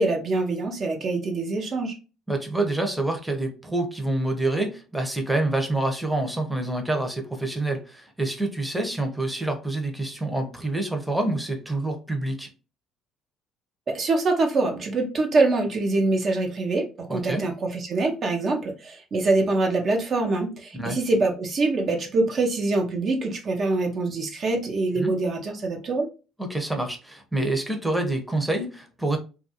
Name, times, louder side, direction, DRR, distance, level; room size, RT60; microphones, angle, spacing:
voice 1, 0.0-1.9 13.9-26.1, right 3 dB, 50° right, 0.6 m, -24 dB
voice 2, 2.3-12.5 17.1-17.4 20.7-21.0 25.0-25.1 26.4-29.2, right 2 dB, 5° right, 0.7 m, -27 dB
2.3 x 2.2 x 2.7 m
hypercardioid pair, 55°, 0 cm